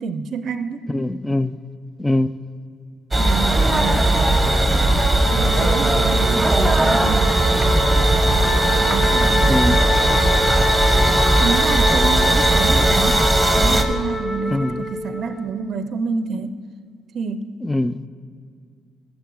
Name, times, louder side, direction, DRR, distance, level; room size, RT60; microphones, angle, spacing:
voice 1, 0.0-0.9 3.2-4.1 5.3-8.2 8.9-9.5 11.4-13.3 13.5-16.5 17.1-17.6, right 5 dB, 60° right, 11 dB, 0.5 m, -28 dB
voice 2, 0.9-1.6 2.0-2.4 9.5-9.9 14.5-14.8 17.6-18.1, left 1 dB, 10° left, 15 dB, 0.3 m, -22 dB
sound 1, 3.1-13.8, right 1 dB, 10° right, 1.0 m, -17 dB
Wind instrument woodwind instrument, 5.2-15.6, equal, 30° left, 0.9 m, -25 dB
14.0 x 6.4 x 4.7 m, 2.2 s
cardioid pair, 90°, 0 cm